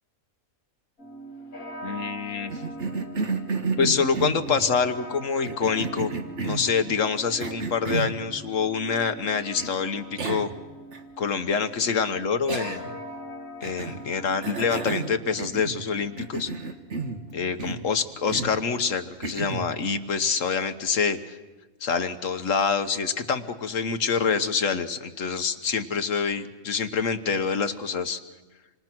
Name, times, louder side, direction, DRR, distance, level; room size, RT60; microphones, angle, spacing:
sound 1, 1.0-18.4, right 1 dB, 85° left, 3.0 m, -43 dB
voice 1, 1.8-2.5 3.8-6.1 6.4-10.5 11.2-12.9 13.6-16.5 17.3-21.4 21.8-28.2, left 5 dB, 65° left, 9 dB, 1.5 m, -26 dB
Cough, 2.5-4.7 5.4-6.7 7.4-8.2 9.6-9.7 10.2-10.6 10.9-11.0 12.5-13.0 13.6-14.0 14.4-15.9 16.2-17.2 17.6-17.9 18.3-18.6 19.2-19.7, right 4 dB, 55° right, 1.9 m, -31 dB
27.5 x 25.5 x 6.1 m, 1.2 s
omnidirectional pair, 1.5 m